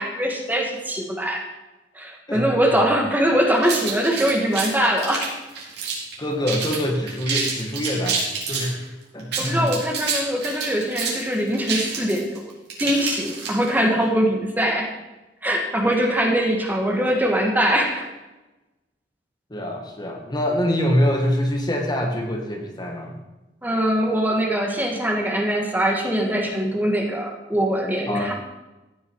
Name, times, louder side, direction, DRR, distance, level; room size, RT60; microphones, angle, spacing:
voice 1, 0.0-1.4 2.0-5.3 9.4-12.4 12.8-14.9 15.4-18.1 23.6-28.3, equal, 10° right, 1 dB, 1.8 m, -22 dB
sound 1, 3.6-6.1 6.5-6.8 7.1-8.7 9.2-13.8, right 5 dB, 65° right, 4.1 m, -27 dB
voice 2, 6.2-8.8 9.1-9.7 19.5-23.2 28.1-28.3, equal, 25° left, 2 dB, 1.7 m, -24 dB
15.0 x 9.5 x 4.8 m, 1.1 s
head